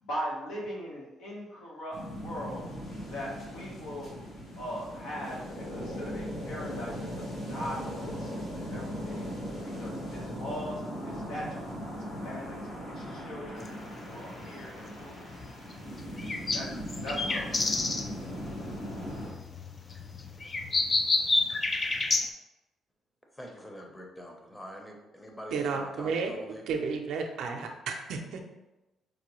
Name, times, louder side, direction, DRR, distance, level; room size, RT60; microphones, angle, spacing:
voice 1, 0.0-2.6 3.1-4.1 4.6-9.3 9.8-11.7 11.9-12.6 12.9-13.7 14.1-15.3 16.5-16.7 17.0-17.8, equal, 85° left, -4 dB, 1.2 m, -40 dB
sound 1, 1.9-19.3, equal, 60° left, 1.2 m, -39 dB
sound 2, 13.6-22.3, left 3 dB, 35° left, 0.4 m, -31 dB
voice 2, 23.3-26.6, equal, 15° left, 1 dB, 0.8 m, -44 dB
voice 3, 25.5-26.3 26.7-28.5, right 5 dB, 80° right, 4 dB, 0.5 m, -32 dB
4.9 x 2.2 x 3.0 m, 1.0 s
cardioid pair, 90°, 0 cm